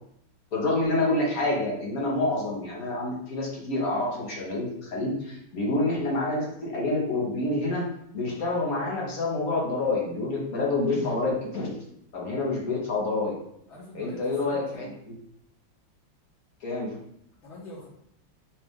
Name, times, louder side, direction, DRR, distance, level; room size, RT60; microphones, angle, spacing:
voice 1, 0.5-7.9 8.1-11.8 12.1-13.4 13.9-14.9 16.6-17.0, left 2 dB, 55° left, -3 dB, 1.2 m, -27 dB
voice 2, 13.7-14.9 17.4-17.9, left 1 dB, 85° left, -8 dB, 2.0 m, -45 dB
5.2 x 2.4 x 3.5 m, 0.73 s
omnidirectional pair, 2.1 m